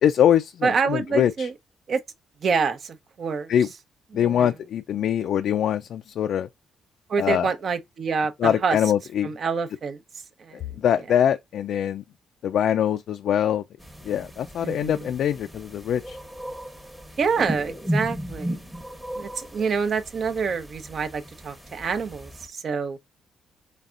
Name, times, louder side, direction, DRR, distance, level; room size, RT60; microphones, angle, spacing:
voice 1, 0.0-1.5 3.5-3.7 4.1-6.5 7.2-7.5 8.4-9.3 10.5-12.0 12.4-13.6 14.0-16.2, left 9 dB, 70° left, 0.3 m, -23 dB
voice 2, 0.6-1.5 1.9-2.0 2.4-3.5 4.1-4.5 7.1-8.8 9.2-10.0 10.4-10.8 11.1-11.2 14.6-15.1 17.2-18.6 19.1-23.0, right 5 dB, 50° right, 0.7 m, -27 dB
sound 1, 13.8-22.5, equal, 10° right, 1.0 m, -35 dB
4.0 x 3.4 x 2.4 m
cardioid pair, 90°, 0 cm